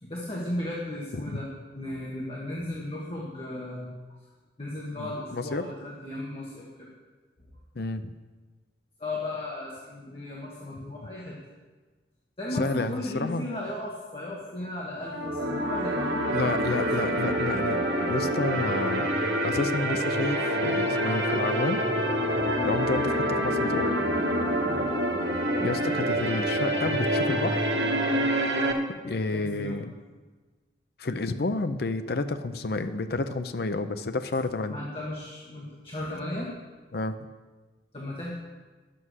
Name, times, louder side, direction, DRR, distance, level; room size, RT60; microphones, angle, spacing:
voice 1, 0.0-4.2 4.6-6.9 9.0-11.3 12.4-17.1 24.7-24.9 29.3-29.8 34.7-36.5 37.9-38.3, left 1 dB, 30° left, -5 dB, 1.5 m, -36 dB
voice 2, 5.0-5.6 7.8-8.1 12.5-13.5 16.3-17.8 18.1-19.1 19.4-21.8 22.6-23.9 25.6-27.6 29.0-29.9 31.0-34.8 36.9-37.2, left 3 dB, 60° left, 10 dB, 0.5 m, -30 dB
sound 1, 15.0-28.7, equal, 75° right, 1.5 m, -26 dB
11.0 x 7.7 x 6.3 m, 1.3 s
head